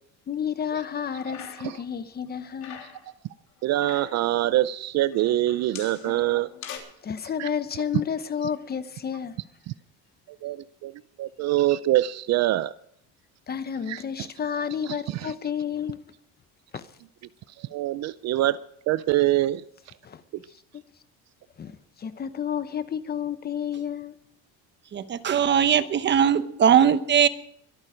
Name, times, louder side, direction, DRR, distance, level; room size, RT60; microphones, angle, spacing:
voice 1, 0.3-2.8 7.0-9.4 13.5-16.0 16.7-16.9 20.0-20.2 20.7-20.8 21.6-24.2, left 8 dB, 25° left, 0.9 m, -31 dB
sound 1, 1.0-1.9 2.1-3.1 3.6-4.3 5.1-6.8, left 8 dB, 50° left, 3.3 m, -42 dB
voice 2, 3.6-6.5 7.4-7.5 9.7-9.8 10.4-10.6 10.8-10.9 11.2-12.7 13.9-14.3 14.9-15.3 17.6-18.6 18.9-19.6, right 15 dB, 45° right, 0.5 m, -24 dB
voice 3, 24.9-27.3, right 8 dB, 30° right, 0.8 m, -20 dB
23.5 x 8.9 x 5.1 m
cardioid pair, 140°, 37 cm